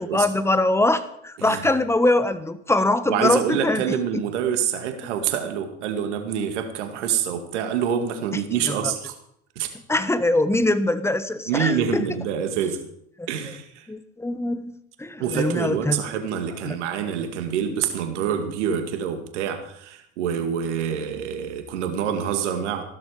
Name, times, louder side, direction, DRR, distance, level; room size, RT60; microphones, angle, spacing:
voice 1, 0.0-4.0 8.6-8.9 9.9-12.1 13.2-13.3 13.9-14.7 15.0-16.0 16.6-16.8, left 2 dB, 5° left, 12 dB, 1.4 m, -23 dB
voice 2, 1.4-1.7 3.1-9.1 9.6-9.7 11.5-12.8 13.3-13.9 15.2-22.8, right 8 dB, 80° right, 6 dB, 2.2 m, -26 dB
15.0 x 12.5 x 5.0 m, 0.71 s
hypercardioid pair, 70°, 35 cm